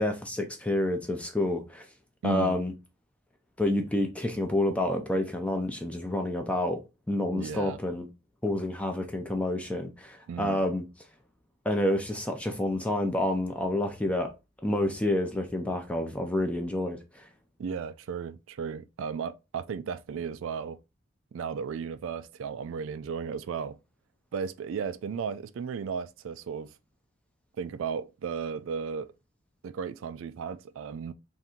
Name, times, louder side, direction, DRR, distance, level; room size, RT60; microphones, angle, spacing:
voice 1, 0.0-1.9 2.2-2.7 3.6-6.8 7.1-8.1 8.4-10.8 11.7-14.3 14.6-17.3, left 1 dB, 5° left, 0.5 m, -28 dB
voice 2, 2.2-2.6 7.3-7.8 10.3-10.6 17.6-20.8 21.3-23.8 24.3-26.7 27.6-29.1 29.6-31.1, right 6 dB, 70° right, 0.3 m, -35 dB
3.6 x 2.6 x 4.3 m
head